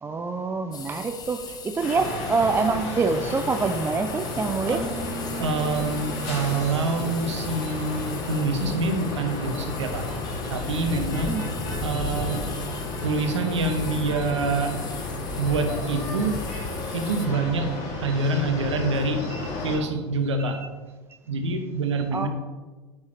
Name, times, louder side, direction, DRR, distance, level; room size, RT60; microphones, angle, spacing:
voice 1, 0.0-4.9 11.2-11.5 19.3-19.8 20.4-20.5 22.1-22.3, right 4 dB, 15° right, 7 dB, 0.4 m, -26 dB
sound 1, 0.7-17.3, left 6 dB, 25° left, 1.0 m, -42 dB
sound 2, 1.8-19.8, left 2 dB, 50° left, 2.4 m, -32 dB
Keyboard (musical), 4.7-8.3, right 3 dB, 60° right, 1.8 m, -39 dB
voice 2, 5.4-10.1 10.5-11.3 11.8-12.5 13.0-14.8 15.4-16.4 16.9-17.7 18.0-19.3 19.6-20.6 21.3-22.3, right 3 dB, 80° right, 6 dB, 1.0 m, -26 dB
8.4 x 6.2 x 3.2 m, 1.3 s
hypercardioid pair, 85°, 15 cm